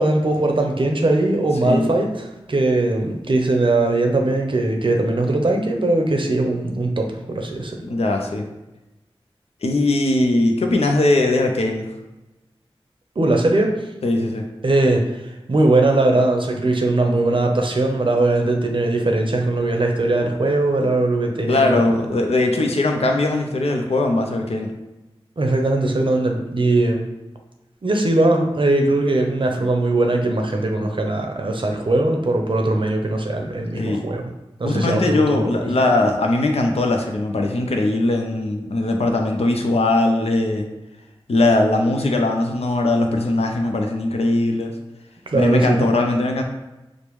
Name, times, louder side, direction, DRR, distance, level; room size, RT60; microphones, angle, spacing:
voice 1, 0.0-7.8 13.2-13.7 14.6-15.2 15.5-21.8 25.4-27.0 27.8-34.2 34.6-35.7 45.3-45.9, right 2 dB, 55° right, 2 dB, 0.6 m, -20 dB
voice 2, 7.8-8.5 9.6-11.9 14.0-14.4 21.5-24.7 33.7-34.0 34.6-40.7 41.3-44.7 45.3-46.4, left 2 dB, 90° left, 3 dB, 0.5 m, -20 dB
5.0 x 2.0 x 3.1 m, 1.0 s
wide cardioid pair, 55°, 10 cm